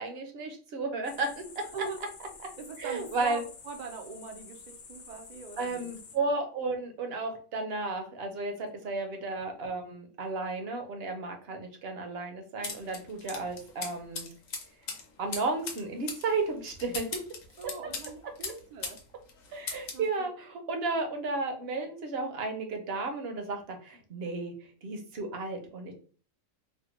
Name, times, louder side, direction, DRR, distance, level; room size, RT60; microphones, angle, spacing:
voice 1, 0.0-1.7 2.8-3.4 5.6-14.3 15.2-17.1 17.6-17.7 19.5-24.5 24.8-25.9, right 3 dB, 60° right, 5 dB, 0.7 m, -33 dB
sound 1, 1.0-6.2, left 4 dB, 60° left, 0.7 m, -50 dB
voice 2, 2.6-5.9 8.6-9.1 17.1-17.2 17.6-19.0 19.9-20.3, right 5 dB, 75° right, 3 dB, 0.4 m, -42 dB
sound 2, 12.6-19.0 19.3-20.1, left 5 dB, 75° left, 1.1 m, -39 dB
3.4 x 2.1 x 3.0 m, 0.41 s
omnidirectional pair, 1.4 m